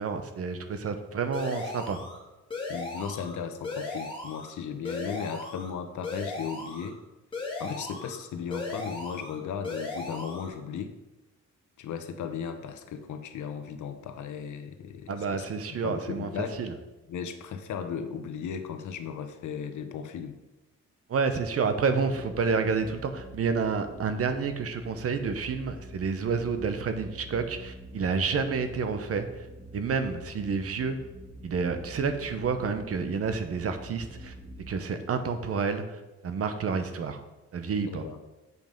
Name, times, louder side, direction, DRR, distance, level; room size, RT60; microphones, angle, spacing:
voice 1, 0.0-2.0 15.1-16.7 21.1-29.3 29.7-31.0 31.4-37.2 37.5-38.1, right 5 dB, 50° right, 9 dB, 0.9 m, -29 dB
sound 1, 1.3-2.2 2.5-3.4 3.6-4.5 4.8-5.7 6.0-6.9 7.3-8.2 8.5-9.4 9.6-10.5, left 3 dB, 15° left, 2.2 m, -36 dB
voice 2, 2.7-7.0 7.6-11.0 11.8-15.4 15.8-16.6 17.1-20.4 37.8-38.2, left 7 dB, 75° left, 8 dB, 0.9 m, -36 dB
sound 2, 22.1-34.8, right 1 dB, 25° right, 2.7 m, -46 dB
8.0 x 5.4 x 5.2 m, 1.0 s
cardioid pair, 130°, 30 cm